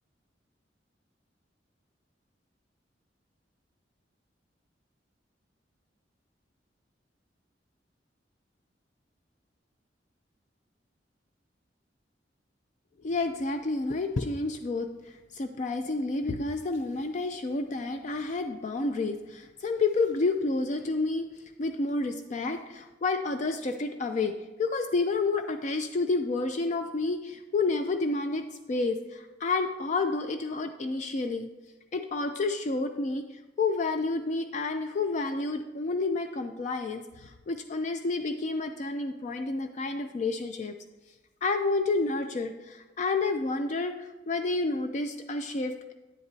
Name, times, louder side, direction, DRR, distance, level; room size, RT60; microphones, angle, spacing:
voice 1, 13.0-21.3 21.6-24.3 24.6-31.5 31.9-33.3 33.6-40.7 41.4-45.9, left 3 dB, 40° left, 7 dB, 0.4 m, -30 dB
9.6 x 7.9 x 2.7 m, 1.1 s
head